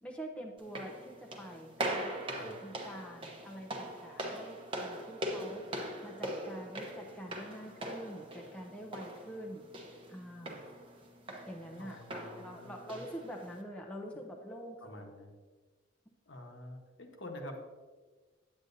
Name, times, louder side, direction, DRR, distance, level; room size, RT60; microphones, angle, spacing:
voice 1, 0.0-5.6 6.0-9.7 10.1-10.7 11.4-15.2, equal, 5° left, -1 dB, 0.7 m, -46 dB
sound 1, 0.6-13.6, right 1 dB, 25° right, 1.0 m, -42 dB
voice 2, 11.8-13.0 14.8-15.3 16.3-17.6, left 1 dB, 65° left, 2 dB, 1.1 m, -48 dB
8.9 x 8.8 x 2.7 m, 1.3 s
head